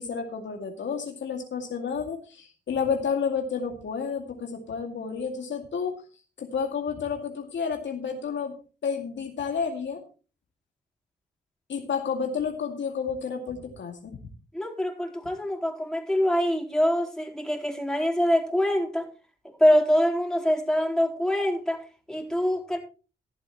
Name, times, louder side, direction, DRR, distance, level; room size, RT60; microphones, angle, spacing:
voice 1, 0.0-6.0 6.4-8.5 8.8-10.0 11.7-14.2, left 6 dB, 60° left, 3 dB, 2.3 m, -30 dB
voice 2, 14.5-19.1 19.6-21.8 22.1-22.8, equal, 5° left, 0 dB, 3.9 m, -24 dB
15.0 x 11.0 x 3.1 m, 0.35 s
hypercardioid pair, 40°, 21 cm